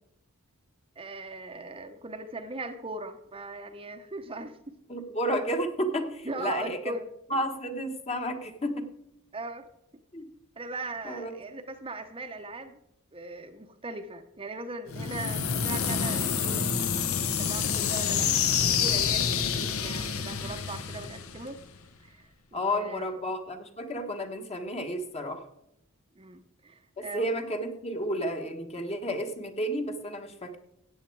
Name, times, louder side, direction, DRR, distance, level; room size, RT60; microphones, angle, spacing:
voice 1, 1.0-4.7 6.2-7.0 7.3-7.4 9.3-9.7 10.6-12.8 13.1-18.3 18.6-21.6 22.0-23.2 26.1-27.3, right 2 dB, 25° right, 6 dB, 0.8 m, -39 dB
voice 2, 4.9-6.9 7.3-8.9 10.1-10.2 11.0-11.3 22.5-25.5 27.0-30.6, equal, 30° left, 5 dB, 1.4 m, -31 dB
sound 1, 14.9-21.8, left 7 dB, 65° left, 1.0 m, -28 dB
14.5 x 9.0 x 4.7 m, 0.83 s
head